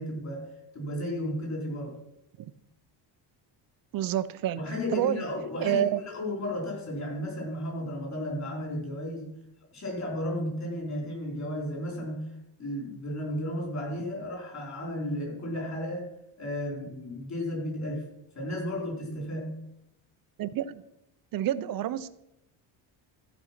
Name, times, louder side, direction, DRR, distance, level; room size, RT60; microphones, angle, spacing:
voice 1, 0.0-2.0 4.6-9.4 9.7-12.3 12.6-16.1 16.4-18.0 18.3-19.6, left 1 dB, 35° left, -1 dB, 4.1 m, -34 dB
voice 2, 3.9-4.6 4.9-5.3 5.6-6.0 20.4-20.8 21.3-22.1, right 11 dB, 50° right, 14 dB, 0.6 m, -28 dB
14.5 x 5.2 x 5.9 m, 0.84 s
cardioid pair, 165°, 45 cm